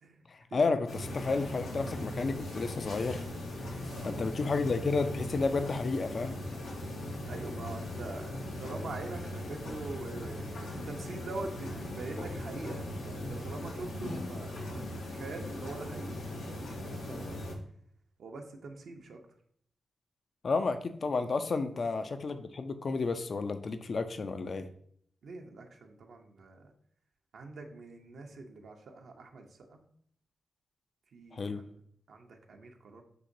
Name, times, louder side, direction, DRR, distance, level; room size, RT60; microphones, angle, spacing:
voice 1, 0.3-3.2 4.0-6.4 20.4-24.7 31.3-31.6, left 4 dB, 60° left, 9 dB, 0.3 m, -31 dB
sound 1, 0.9-17.5, left 1 dB, 90° left, 0.7 m, -39 dB
voice 2, 3.9-4.3 7.3-10.6 10.8-17.4 18.2-19.2 21.7-21.8 25.2-26.7 27.3-29.8 31.1-31.8 32.1-33.0, right 3 dB, 75° right, 2 dB, 0.6 m, -44 dB
6.1 x 2.9 x 2.6 m, 0.65 s
supercardioid pair, 45°, 0 cm